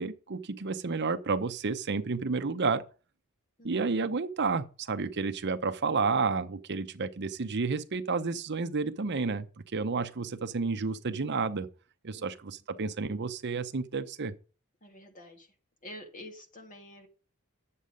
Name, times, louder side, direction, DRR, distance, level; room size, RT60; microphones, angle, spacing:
voice 1, 0.0-2.8 3.6-11.7 12.0-14.3, right 4 dB, 55° right, 0.7 m, -31 dB
voice 2, 14.8-15.5 15.8-17.1, left 1 dB, 35° left, 2.1 m, -48 dB
9.9 x 7.5 x 5.2 m
head